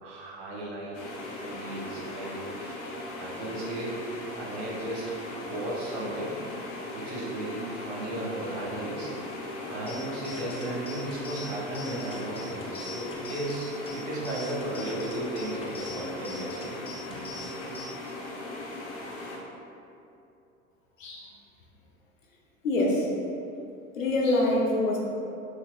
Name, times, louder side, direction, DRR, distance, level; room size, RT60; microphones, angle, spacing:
voice 1, 0.0-1.0 1.4-2.8 3.2-4.0 4.4-6.4 6.9-9.1 9.7-16.7 17.1-17.2, right 1 dB, 60° right, -5 dB, 1.4 m, -35 dB
sound 1, 0.9-19.4, left 2 dB, 60° left, 1.0 m, -39 dB
sound 2, 9.9-17.9, left 1 dB, 15° left, 0.7 m, -43 dB
voice 2, 21.0-21.3 22.6-23.1 24.0-25.0, left 2 dB, 85° left, -3 dB, 0.9 m, -25 dB
6.4 x 3.3 x 2.4 m, 2.8 s
hypercardioid pair, 75°, 38 cm